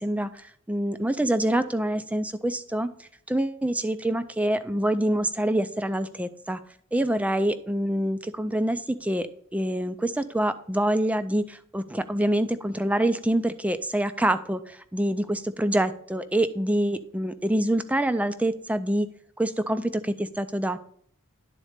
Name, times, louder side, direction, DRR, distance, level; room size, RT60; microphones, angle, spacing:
voice 1, 0.0-2.9 3.3-6.6 6.9-19.1 19.4-20.8, right 1 dB, 5° right, 11 dB, 0.4 m, -26 dB
11.0 x 4.1 x 5.0 m, 0.64 s
head